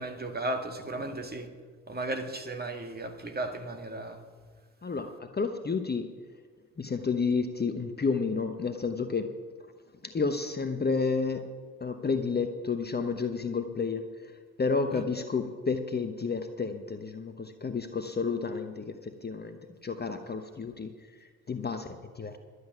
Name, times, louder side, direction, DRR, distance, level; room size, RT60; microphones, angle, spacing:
voice 1, 0.0-1.5 1.9-4.2 14.9-15.0, right 2 dB, 20° right, 2.0 m, -35 dB
voice 2, 4.8-6.1 6.8-9.3 10.0-11.5 11.8-20.9 21.2-22.4, left 4 dB, 25° left, 1.0 m, -31 dB
12.0 x 8.0 x 9.5 m
hypercardioid pair, 50°, 41 cm